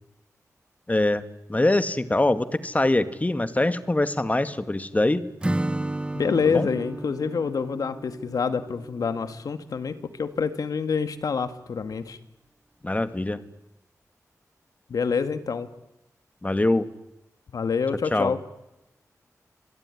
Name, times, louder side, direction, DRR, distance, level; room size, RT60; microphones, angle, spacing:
voice 1, 0.9-5.2 6.5-6.7 12.8-13.4 16.4-16.9 18.1-18.3, left 2 dB, 25° left, 11 dB, 2.1 m, -23 dB
Acoustic guitar / Strum, 5.4-9.3, right 1 dB, 15° right, 1.3 m, -32 dB
voice 2, 6.1-12.2 14.9-15.7 17.5-18.4, left 5 dB, 80° left, 10 dB, 1.9 m, -27 dB
26.0 x 21.5 x 9.9 m, 0.96 s
cardioid pair, 55°, 6 cm